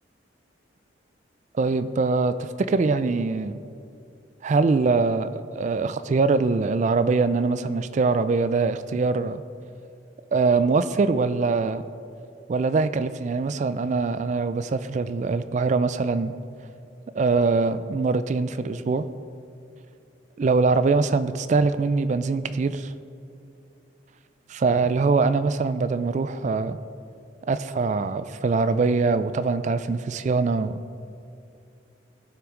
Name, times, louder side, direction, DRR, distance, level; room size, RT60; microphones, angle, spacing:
voice 1, 1.5-3.6 4.4-9.4 10.3-11.8 12.5-16.3 17.1-19.0 20.4-22.9 24.5-26.8 27.5-30.8, right 4 dB, 40° right, 12 dB, 0.3 m, -23 dB
16.0 x 6.0 x 3.7 m, 2.5 s
head